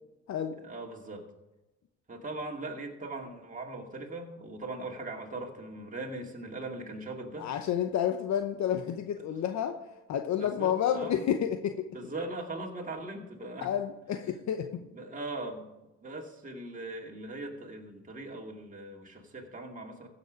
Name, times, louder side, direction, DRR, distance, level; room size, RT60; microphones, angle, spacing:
voice 1, 0.6-1.3 2.1-7.5 10.4-11.2 11.9-13.7 14.7-15.7 16.0-20.1, right 2 dB, 25° right, 0 dB, 2.2 m, -40 dB
voice 2, 7.4-9.8 10.1-11.9 13.6-14.8, left 9 dB, 65° left, 7 dB, 0.8 m, -30 dB
15.0 x 7.0 x 5.2 m, 1.0 s
cardioid pair, 90°, 30 cm